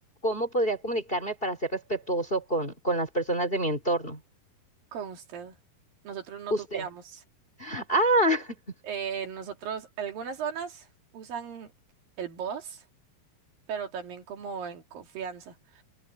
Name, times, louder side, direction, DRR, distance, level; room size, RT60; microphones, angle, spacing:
voice 1, 0.2-4.2 6.5-6.8 7.6-8.5, right 1 dB, 15° left, 3.0 m, -27 dB
voice 2, 4.9-5.6 6.0-7.2 7.7-7.8 8.8-10.9 11.1-11.7 12.2-12.8 13.7-15.8, right 7 dB, 70° right, 4.0 m, -36 dB
omnidirectional pair, 4.3 m